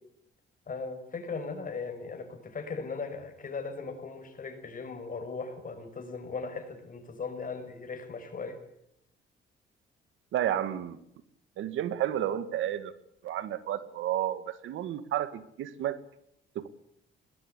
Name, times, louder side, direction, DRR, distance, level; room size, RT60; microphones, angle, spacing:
voice 1, 0.7-8.6, left 4 dB, 45° left, 6 dB, 6.2 m, -38 dB
voice 2, 10.3-11.0 11.6-12.9 13.2-16.0 16.5-16.7, right 11 dB, 85° right, 13 dB, 1.8 m, -31 dB
21.5 x 20.0 x 8.5 m, 0.77 s
cardioid pair, 90°, 20 cm